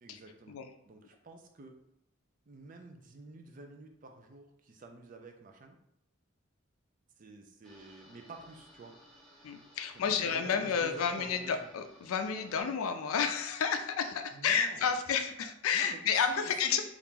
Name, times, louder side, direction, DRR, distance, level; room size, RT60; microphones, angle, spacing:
voice 1, 0.0-0.6 0.8-1.8 2.5-5.8 7.2-8.9 10.1-11.6 14.3-14.9 15.7-16.8, right 2 dB, 40° right, 4 dB, 0.4 m, -49 dB
sound 1, 7.6-12.6, equal, 5° left, 0.6 m, -59 dB
voice 2, 9.4-16.8, left 6 dB, 85° left, 7 dB, 0.4 m, -31 dB
2.8 x 2.4 x 3.6 m, 0.77 s
head